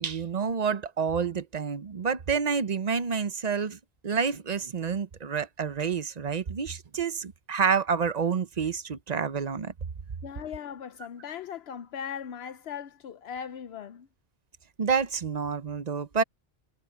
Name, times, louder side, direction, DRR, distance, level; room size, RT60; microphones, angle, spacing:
voice 1, 0.0-3.8 4.0-9.7 14.8-16.2, right 6 dB, 45° right, 0.8 m, -28 dB
voice 2, 10.2-14.1, left 8 dB, 75° left, 0.9 m, -39 dB
omnidirectional pair, 1.1 m